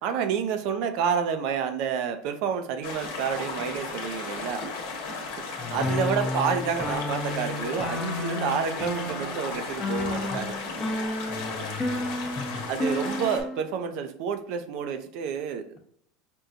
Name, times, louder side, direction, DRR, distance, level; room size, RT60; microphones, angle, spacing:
voice 1, 0.0-4.7 5.5-10.6 11.7-11.9 12.7-15.8, right 7 dB, 65° right, 8 dB, 0.5 m, -29 dB
sound 1, 2.8-13.4, left 4 dB, 70° left, 1.0 m, -35 dB
voice 2, 5.6-6.0 9.9-10.4 11.3-12.6, left 4 dB, 35° left, -2 dB, 0.9 m, -40 dB
sound 2, 5.8-13.7, left 1 dB, 15° left, 0.7 m, -32 dB
5.2 x 2.3 x 2.6 m, 0.68 s
supercardioid pair, 115°, 0 cm